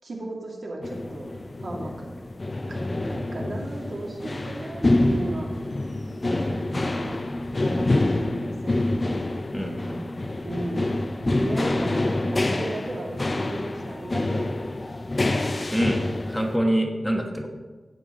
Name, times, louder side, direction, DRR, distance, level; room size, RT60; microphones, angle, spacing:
voice 1, 0.0-1.3 1.6-2.1 2.7-5.5 6.7-8.8 10.4-10.9 11.3-14.5, right 1 dB, 65° right, -1 dB, 2.4 m, -35 dB
sound 1, 0.8-16.6, left 2 dB, 35° left, 0.7 m, -27 dB
voice 2, 6.3-6.6 9.5-10.0 15.7-17.5, equal, 5° left, 2 dB, 1.2 m, -26 dB
16.5 x 6.8 x 3.9 m, 1.3 s
wide cardioid pair, 90°, 0 cm